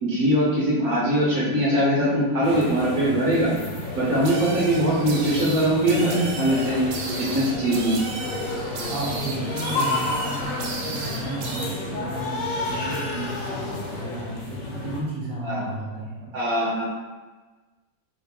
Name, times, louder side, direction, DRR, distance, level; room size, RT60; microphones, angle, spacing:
voice 1, 0.0-3.5 3.9-6.8 7.2-8.0 15.4-15.6 16.3-16.8, right 1 dB, 65° right, -6 dB, 1.0 m, -22 dB
sound 1, 2.4-15.0, left 2 dB, 70° left, 1.2 m, -31 dB
sound 2, 4.2-11.7, right 3 dB, 80° right, 0.7 m, -35 dB
voice 2, 8.9-10.5 10.8-16.3, right 2 dB, 45° right, -7 dB, 0.7 m, -33 dB
3.1 x 2.4 x 3.3 m, 1.3 s
omnidirectional pair, 2.0 m